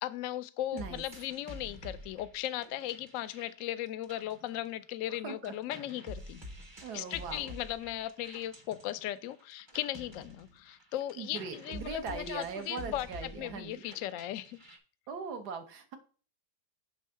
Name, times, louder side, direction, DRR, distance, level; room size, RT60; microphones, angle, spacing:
voice 1, 0.0-6.4 6.9-14.6, left 13 dB, 70° left, 14 dB, 0.7 m, -37 dB
voice 2, 0.7-1.0 5.1-5.5 6.8-7.5 11.2-13.8 15.1-16.0, right 5 dB, 70° right, 7 dB, 1.6 m, -40 dB
sound 1, 0.8-5.2 5.4-14.8, left 1 dB, 25° right, 0.7 m, -49 dB
6.4 x 3.5 x 5.6 m, 0.38 s
omnidirectional pair, 1.8 m